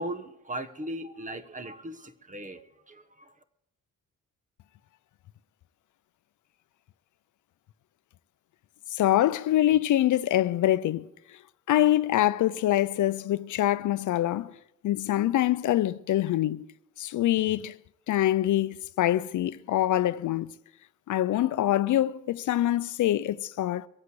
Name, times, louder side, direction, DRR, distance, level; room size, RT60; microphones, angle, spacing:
voice 1, 0.0-3.3, right 1 dB, 25° right, 1.1 m, -38 dB
voice 2, 8.9-11.1 11.7-14.5 14.8-16.7 17.0-17.8 18.1-20.5 21.1-23.9, left 13 dB, 65° left, 0.5 m, -25 dB
23.5 x 8.2 x 4.8 m
cardioid pair, 120°, 32 cm